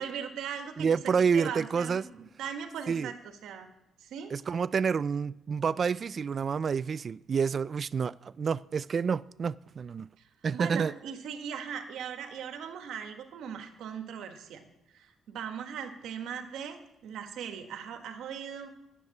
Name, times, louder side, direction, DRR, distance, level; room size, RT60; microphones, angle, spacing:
voice 1, 0.0-3.7 4.0-4.3 10.5-14.7 14.9-18.7, right 7 dB, 80° right, 1.6 m, -39 dB
voice 2, 0.8-2.1 2.9-3.1 4.3-10.1 10.4-10.9, right 6 dB, 45° right, 0.3 m, -28 dB
10.0 x 8.2 x 8.5 m
cardioid pair, 90°, 0 cm